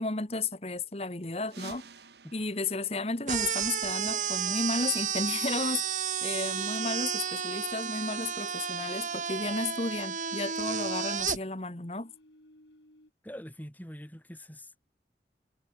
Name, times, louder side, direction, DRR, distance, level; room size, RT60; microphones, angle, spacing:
voice 1, 0.0-1.9 2.3-12.1, left 3 dB, 35° left, 1.6 m, -33 dB
sound 1, 1.4-4.0, right 4 dB, 70° right, 2.1 m, -51 dB
sound 2, 3.3-11.4, right 7 dB, 45° right, 1.7 m, -32 dB
sound 3, 11.5-13.1, left 1 dB, 85° left, 5.5 m, -61 dB
voice 2, 13.2-14.9, equal, 10° left, 4.7 m, -44 dB
head